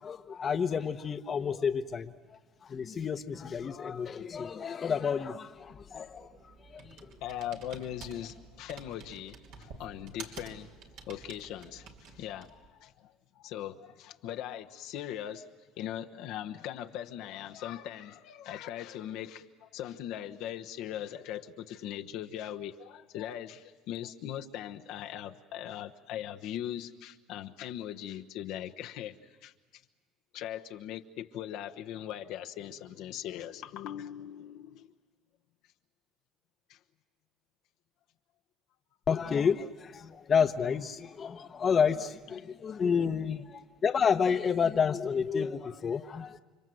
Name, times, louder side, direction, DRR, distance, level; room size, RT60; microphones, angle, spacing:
voice 1, 0.0-2.1 2.6-6.4 6.7-7.0 39.1-46.4, left 6 dB, 40° left, 10 dB, 1.0 m, -30 dB
Computer keyboard, 5.7-12.7, right 5 dB, 70° right, 3.1 m, -50 dB
voice 2, 7.2-10.7 11.1-15.5 15.8-29.1 29.4-29.5 30.3-34.9 36.7-36.8 42.8-43.1, left 11 dB, 70° left, 6 dB, 1.1 m, -40 dB
30.0 x 25.0 x 7.9 m, 1.4 s
supercardioid pair, 85°, 0 cm